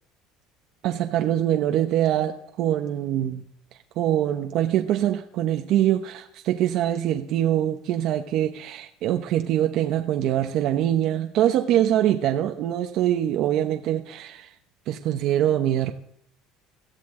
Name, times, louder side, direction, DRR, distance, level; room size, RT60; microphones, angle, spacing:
voice 1, 0.8-3.4 4.0-14.5 14.9-15.9, right 11 dB, 50° right, 5 dB, 0.9 m, -24 dB
17.5 x 14.0 x 3.8 m, 0.68 s
cardioid pair, 170°, 0 cm